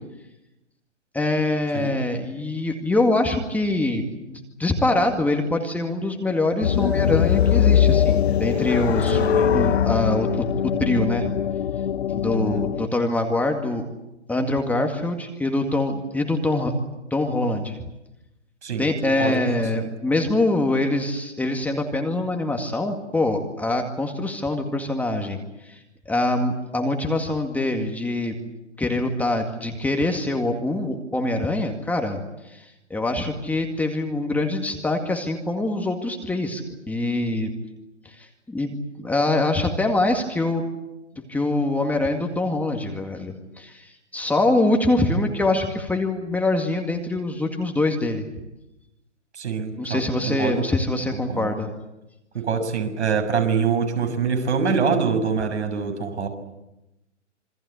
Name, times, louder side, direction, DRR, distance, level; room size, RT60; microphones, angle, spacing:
voice 1, 1.1-4.0 4.3-9.2 9.5-11.3 12.1-13.8 14.3-16.7 17.1-17.8 18.8-25.4 25.6-25.8 26.1-28.3 28.8-36.6 36.9-37.5 38.1-38.7 39.0-40.6 41.3-48.3 49.8-51.7, left 2 dB, 5° left, 3 dB, 2.1 m, -24 dB
sound 1, 6.6-12.9, left 9 dB, 60° left, 1.0 m, -21 dB
voice 2, 9.1-9.6 12.3-12.6 18.6-18.9 19.2-19.9 49.3-50.0 50.3-50.6 51.3-51.5 52.3-56.3, right 6 dB, 65° right, 5 dB, 7.0 m, -25 dB
27.5 x 24.0 x 8.3 m, 0.95 s
figure-of-eight pair, 130°, 37 cm